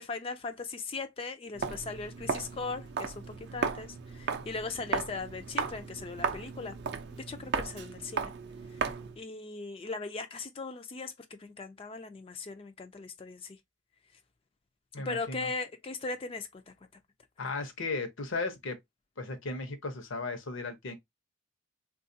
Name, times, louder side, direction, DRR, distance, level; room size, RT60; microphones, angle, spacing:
voice 1, 0.0-6.8 7.1-8.3 9.2-11.1 11.4-13.6 15.0-16.7, left 4 dB, 25° left, 0.3 m, -39 dB
Walk footsteps, 1.5-9.2, right 5 dB, 50° right, 0.4 m, -35 dB
voice 2, 14.9-15.5 17.4-18.8 19.2-20.9, left 3 dB, 75° left, 0.8 m, -36 dB
3.6 x 2.4 x 2.6 m
head